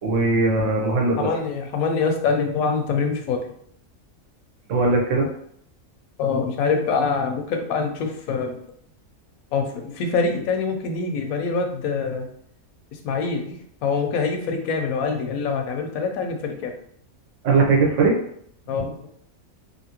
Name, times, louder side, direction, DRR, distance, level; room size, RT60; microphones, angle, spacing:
voice 1, 0.0-1.3 4.7-5.3 17.4-18.2, right 3 dB, 65° right, -1 dB, 1.1 m, -19 dB
voice 2, 1.2-3.5 6.2-8.6 9.5-12.3 13.0-16.7 18.7-19.1, left 4 dB, 85° left, 4 dB, 1.0 m, -25 dB
2.8 x 2.8 x 2.8 m, 0.65 s
omnidirectional pair, 1.4 m